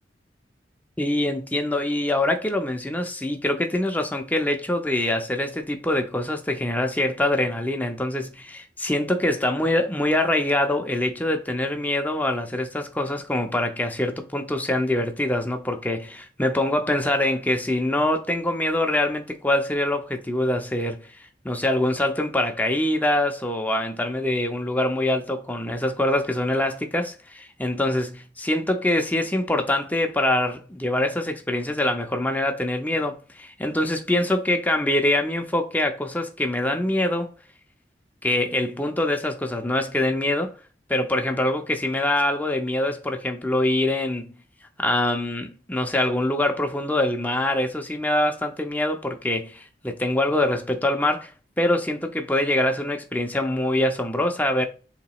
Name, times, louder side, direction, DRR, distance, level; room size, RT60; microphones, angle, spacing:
voice 1, 1.0-37.3 38.2-40.5 40.9-44.3 44.8-51.3 51.6-54.7, left 1 dB, 10° left, 0.6 m, -24 dB
7.1 x 2.9 x 2.3 m
head